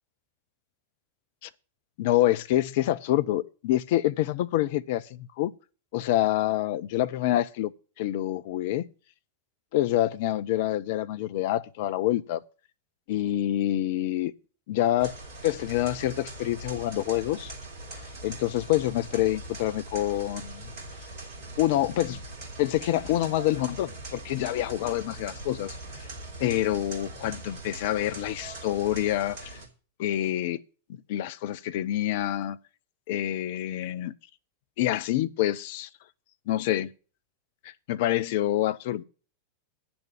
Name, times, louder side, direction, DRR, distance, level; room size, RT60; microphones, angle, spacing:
voice 1, 2.0-5.5 5.9-7.7 8.0-8.9 9.7-12.4 13.1-14.3 14.7-15.2 15.4-17.5 18.0-20.7 21.6-22.2 22.6-25.8 26.4-29.6 30.0-30.6 30.9-32.6 33.1-34.1 34.8-35.9 36.5-36.9 37.6-39.0, left 13 dB, 50° left, 0.6 m, -27 dB
sound 1, 15.0-29.7, right 2 dB, 50° right, 3.5 m, -41 dB
9.6 x 7.1 x 7.3 m
figure-of-eight pair, 90°, 0 cm